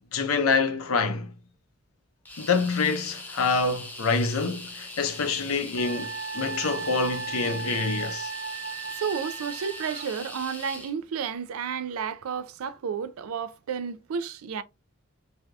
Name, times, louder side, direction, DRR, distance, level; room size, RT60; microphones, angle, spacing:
voice 1, 0.1-1.3 2.4-8.3, left 4 dB, 90° left, 0.6 m, -26 dB
sound 1, 2.2-10.9, left 2 dB, 10° left, 0.6 m, -41 dB
Wind instrument woodwind instrument, 5.8-10.1, right 5 dB, 45° right, 0.7 m, -36 dB
voice 2, 9.0-14.6, right 6 dB, 80° right, 0.4 m, -32 dB
3.2 x 2.7 x 2.3 m
head